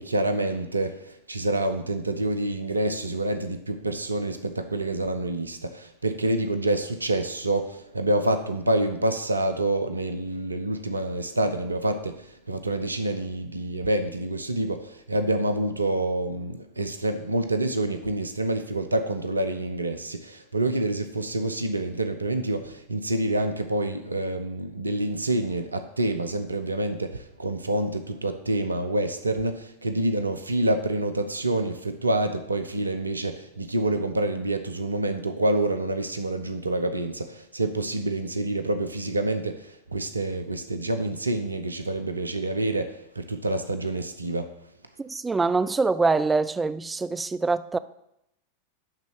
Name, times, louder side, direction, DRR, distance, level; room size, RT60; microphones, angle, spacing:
voice 1, 0.0-44.5, right 2 dB, 80° right, 0.7 m, -27 dB
voice 2, 45.0-47.8, right 4 dB, 10° right, 0.4 m, -24 dB
11.5 x 4.0 x 6.6 m
figure-of-eight pair, 90°, 0 cm